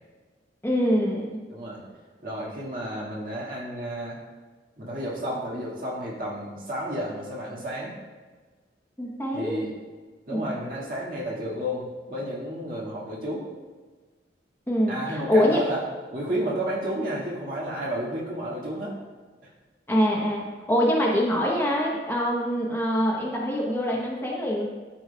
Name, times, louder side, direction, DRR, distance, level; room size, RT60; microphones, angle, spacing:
voice 1, 0.6-1.4 9.0-9.6 10.3-10.5 14.7-15.6 19.9-24.6, equal, 15° left, -3 dB, 0.9 m, -24 dB
voice 2, 1.5-1.8 2.2-4.2 4.8-7.9 9.3-9.7 10.3-13.5 14.9-15.8 16.1-19.0 19.4-19.5, equal, 50° right, -5 dB, 1.9 m, -31 dB
12.5 x 5.4 x 2.3 m, 1.4 s
head